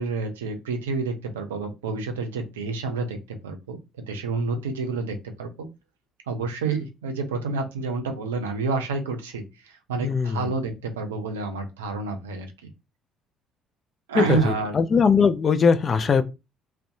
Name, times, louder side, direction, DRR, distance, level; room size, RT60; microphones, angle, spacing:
voice 1, 0.0-3.2 3.4-5.7 6.3-12.5 14.1-14.8, right 4 dB, 75° right, 0.5 m, -29 dB
voice 2, 14.9-16.2, left 5 dB, 40° left, 0.3 m, -19 dB
2.5 x 2.1 x 2.5 m
figure-of-eight pair, 50°, 0 cm